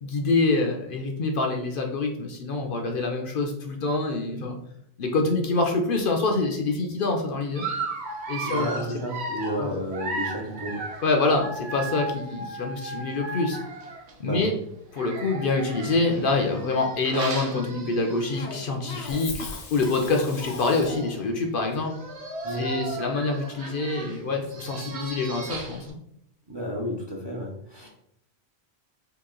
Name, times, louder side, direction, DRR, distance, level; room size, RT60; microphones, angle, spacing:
voice 1, 0.0-4.6 5.0-7.7 8.3-8.8 9.6-9.8 11.0-13.6 14.2-14.5 14.9-19.4 19.7-21.9 22.5-26.0, left 3 dB, 60° left, 2 dB, 0.7 m, -26 dB
Dog, 7.5-14.1 14.9-18.5 18.9-19.1 19.4-19.5 20.3-20.4 20.6-21.2 21.8-25.9, right 2 dB, 90° right, 1.0 m, -35 dB
voice 2, 8.4-10.8 14.2-14.5 22.4-22.7 26.5-27.9, equal, 30° right, -2 dB, 0.6 m, -32 dB
Cough, 18.3-21.3, left 3 dB, 90° left, 1.0 m, -38 dB
3.0 x 2.9 x 3.6 m, 0.74 s
omnidirectional pair, 1.1 m